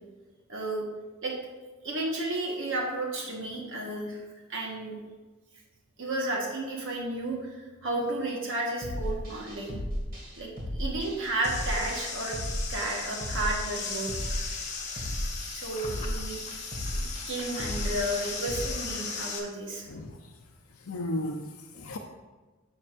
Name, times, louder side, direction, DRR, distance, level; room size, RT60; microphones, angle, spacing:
voice 1, 0.5-0.8 1.2-1.3 1.8-4.2 4.5-5.0 6.0-9.8 10.4-12.4 12.7-14.1 15.5-16.4 17.3-19.9, right 2 dB, 65° right, -1 dB, 1.4 m, -32 dB
sound 1, 8.8-18.7, equal, 45° right, 2.1 m, -35 dB
sound 2, 11.4-19.4, left 4 dB, 35° left, 1.4 m, -37 dB
voice 2, 20.9-22.0, left 1 dB, 75° left, 2 dB, 0.6 m, -34 dB
10.5 x 6.3 x 2.6 m, 1.3 s
head